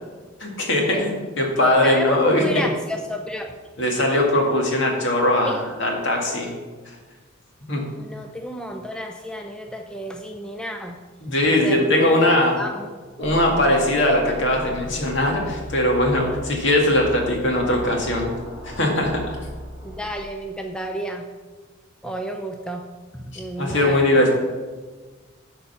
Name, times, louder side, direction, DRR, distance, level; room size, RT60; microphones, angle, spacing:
voice 1, 0.4-2.4 3.8-6.5 7.7-7.8 11.2-12.6 13.2-18.3 18.6-19.4 23.6-24.3, left 1 dB, 60° left, 0 dB, 2.2 m, -20 dB
voice 2, 1.5-3.5 5.5-5.6 8.0-11.0 11.3-12.2 12.6-12.9 13.2-13.7 19.8-21.3 22.0-22.8 23.1-24.2, equal, 5° left, 3 dB, 0.5 m, -30 dB
sound 1, 13.2-20.1, equal, 75° left, 1.7 m, -37 dB
11.5 x 4.6 x 5.6 m, 1.4 s
head